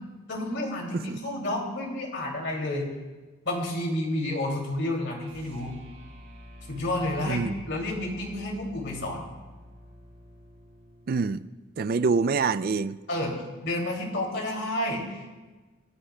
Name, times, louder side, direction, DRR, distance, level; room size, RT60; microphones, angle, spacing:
voice 1, 0.3-2.9 3.4-5.8 6.7-9.3 13.1-15.2, left 1 dB, 60° left, 2.7 m, -30 dB
sound 1, 5.2-11.6, equal, 80° right, 5.2 m, -48 dB
voice 2, 11.1-11.5 11.8-13.0, right 4 dB, 45° right, 0.4 m, -26 dB
27.0 x 11.5 x 2.3 m
head